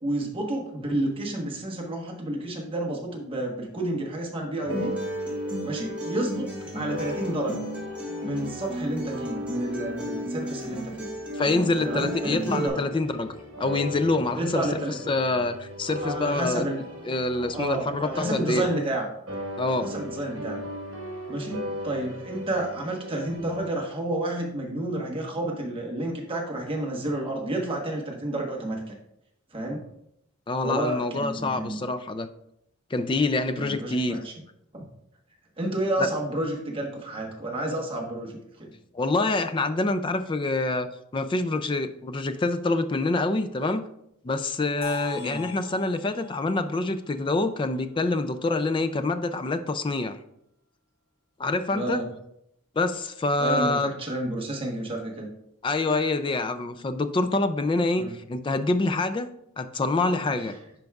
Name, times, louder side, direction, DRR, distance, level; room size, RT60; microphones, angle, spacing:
voice 1, 0.0-4.9 5.6-6.5 6.7-7.6 8.2-11.1 11.8-12.8 14.4-14.9 16.0-16.8 17.3-19.1 19.8-20.6 21.3-28.9 29.5-29.8 30.6-31.8 33.6-34.3 34.7-34.8 35.6-38.7 45.1-45.4 51.7-52.1 53.4-55.3 58.0-58.1, right 1 dB, 25° right, 0 dB, 1.2 m, -30 dB
sound 1, 4.6-19.0 19.3-23.7, left 1 dB, 65° right, 1.4 m, -38 dB
Acoustic guitar, 4.7-12.7, equal, 5° right, 1.6 m, -33 dB
voice 2, 11.3-14.7 15.1-16.7 17.1-18.7 19.6-19.9 30.5-32.3 32.9-34.2 36.0-36.1 38.9-43.8 44.2-50.2 51.4-52.0 52.8-53.9 55.6-60.5, left 2 dB, 25° left, 10 dB, 0.3 m, -26 dB
sound 2, 44.8-48.7, left 7 dB, 75° left, 1.4 m, -43 dB
10.5 x 4.6 x 2.4 m, 0.77 s
head